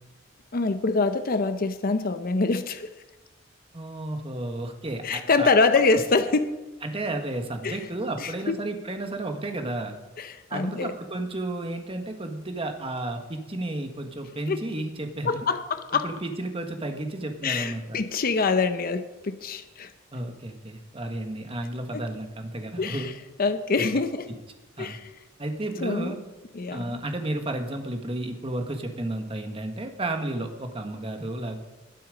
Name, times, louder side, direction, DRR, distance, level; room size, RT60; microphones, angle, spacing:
voice 1, 0.5-2.9 5.0-6.6 7.6-7.8 8.2-8.6 10.2-10.9 14.5-14.6 15.2-16.1 17.4-19.9 21.9-22.1 22.8-23.1 23.4-24.3 24.8-25.1 25.8-26.1 26.5-27.0, left 4 dB, 45° left, 10 dB, 0.6 m, -25 dB
voice 2, 3.7-5.5 6.8-9.9 10.5-15.5 16.0-18.0 20.1-23.1 24.8-25.0 25.4-26.2 26.7-31.7, right 2 dB, 30° right, 5 dB, 1.4 m, -32 dB
20.0 x 7.2 x 5.1 m, 1.1 s
head